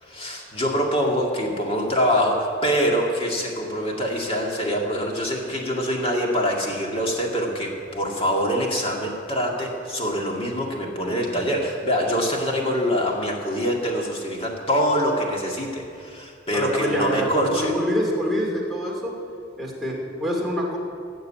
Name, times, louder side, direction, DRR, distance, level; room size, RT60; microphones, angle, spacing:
voice 1, 0.0-17.7, equal, 30° left, 0 dB, 1.9 m, -24 dB
voice 2, 16.5-19.1 19.6-20.8, equal, ahead, -2 dB, 2.3 m, -25 dB
15.5 x 6.7 x 8.7 m, 2.4 s
head